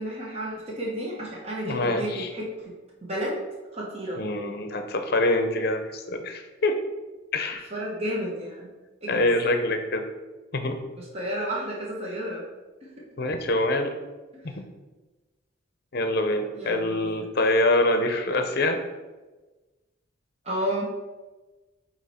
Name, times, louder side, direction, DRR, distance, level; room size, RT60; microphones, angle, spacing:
voice 1, 0.0-2.5 3.0-3.4 3.7-4.2 7.7-8.7 9.0-9.3 11.0-12.4 14.3-14.4 16.5-17.2 20.4-21.0, equal, 30° right, -4 dB, 1.2 m, -31 dB
voice 2, 1.6-2.3 4.2-6.8 7.3-7.7 9.1-10.0 10.5-10.8 13.2-13.9 15.9-18.8, left 2 dB, 55° left, 6 dB, 0.7 m, -25 dB
7.8 x 3.0 x 4.3 m, 1.2 s
head